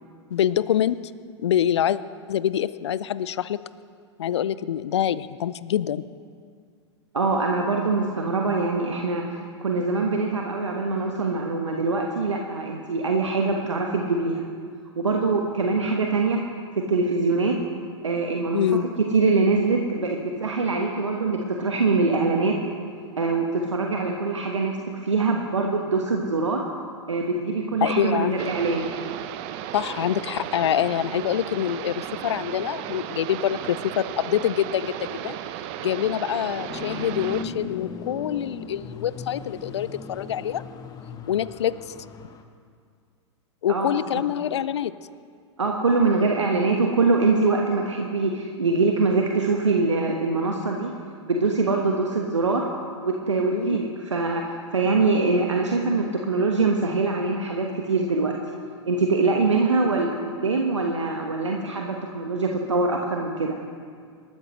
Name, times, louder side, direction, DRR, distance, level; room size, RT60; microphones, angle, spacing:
voice 1, 0.3-1.0 1.4-2.0 2.3-3.6 4.2-6.1 18.5-18.9 27.8-28.4 29.7-35.4 35.8-40.6 41.3-41.7 43.6-44.9 53.5-53.8, left 10 dB, 65° left, 17 dB, 0.5 m, -25 dB
voice 2, 7.1-14.4 15.0-16.4 16.9-17.5 18.0-18.6 19.1-22.6 23.1-26.6 27.1-28.9 43.7-44.2 45.6-50.9 51.2-52.6 53.0-58.3 58.8-63.6, right 3 dB, 80° right, 1 dB, 1.3 m, -23 dB
sound 1, 28.4-37.5, right 11 dB, 40° right, 0.8 m, -35 dB
sound 2, 36.7-42.4, left 4 dB, 25° left, 1.1 m, -38 dB
27.0 x 13.0 x 3.2 m, 2.1 s
figure-of-eight pair, 95°, 15 cm